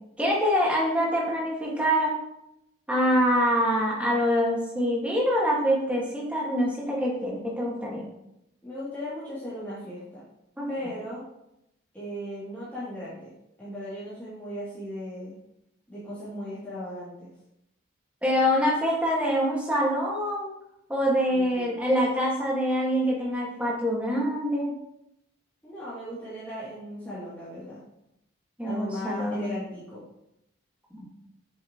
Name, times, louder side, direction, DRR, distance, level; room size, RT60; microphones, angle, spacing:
voice 1, 0.2-2.2 2.9-8.1 10.6-10.7 18.2-20.5 20.9-24.7 28.6-29.5 30.9-31.1, equal, 5° right, -4 dB, 1.9 m, -25 dB
voice 2, 8.6-10.2 10.7-11.2 11.9-13.3 13.6-15.4 15.9-17.3 21.3-22.0 25.6-27.8 28.6-30.0, equal, 10° left, -12 dB, 2.9 m, -37 dB
7.6 x 7.5 x 3.1 m, 0.83 s
head